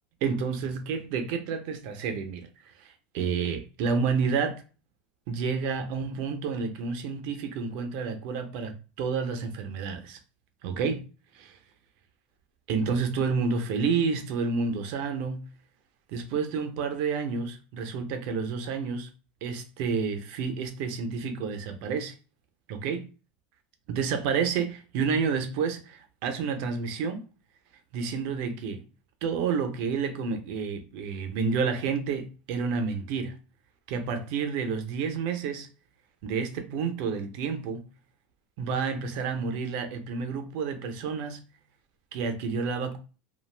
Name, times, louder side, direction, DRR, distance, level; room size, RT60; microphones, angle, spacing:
voice 1, 0.2-2.5 2.8-4.6 5.3-10.2 10.6-11.1 11.3-11.6 12.7-15.5 16.1-19.1 19.4-22.1 22.7-23.1 23.9-27.2 27.9-28.8 29.2-33.4 33.9-35.7 36.2-37.8 38.6-41.4 42.1-43.0, right 5 dB, 60° right, 0.6 m, -30 dB
2.5 x 2.2 x 3.2 m
supercardioid pair, 155°, 5 cm